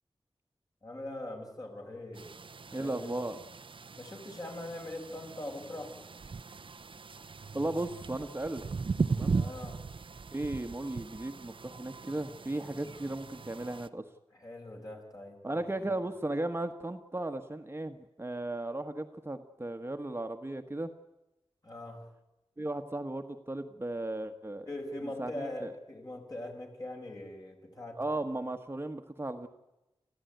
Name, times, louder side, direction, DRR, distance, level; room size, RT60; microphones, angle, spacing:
voice 1, 0.8-2.3 2.7-3.1 4.0-6.1 9.3-9.8 14.3-16.0 21.6-22.0 24.7-28.0, left 1 dB, 40° left, 2 dB, 6.1 m, -42 dB
sound 1, 2.1-13.9, right 4 dB, 60° right, 0.8 m, -38 dB
voice 2, 2.7-3.4 7.5-8.6 9.1-9.4 10.3-14.1 15.4-20.9 22.6-24.7 25.2-25.7 28.0-29.5, right 2 dB, 25° right, 6 dB, 1.3 m, -36 dB
28.0 x 15.0 x 9.3 m, 0.98 s
wide cardioid pair, 75°, 10 cm